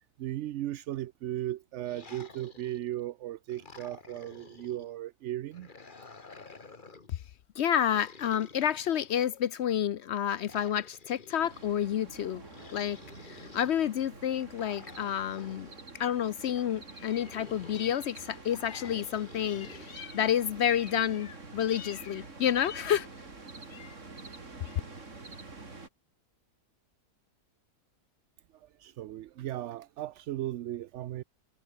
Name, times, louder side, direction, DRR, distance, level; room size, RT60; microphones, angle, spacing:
voice 1, 0.2-5.7 28.8-31.2, right 13 dB, 70° right, 0.7 m, -36 dB
sound 1, 1.8-3.0 3.5-4.9 5.5-7.1 7.8-9.5 10.4-11.7 12.4-13.8 14.5-15.8 16.5-18.0 18.5-20.0, left 4 dB, 30° left, 1.8 m, -51 dB
voice 2, 7.6-12.4 12.7-23.1 23.7-24.0 24.7-24.8, left 10 dB, 65° left, 0.7 m, -30 dB
sound 2, 11.4-25.9, right 3 dB, 50° right, 3.4 m, -48 dB
sound 3, 12.1-14.2, right 1 dB, 15° right, 4.7 m, -57 dB
omnidirectional pair, 1.7 m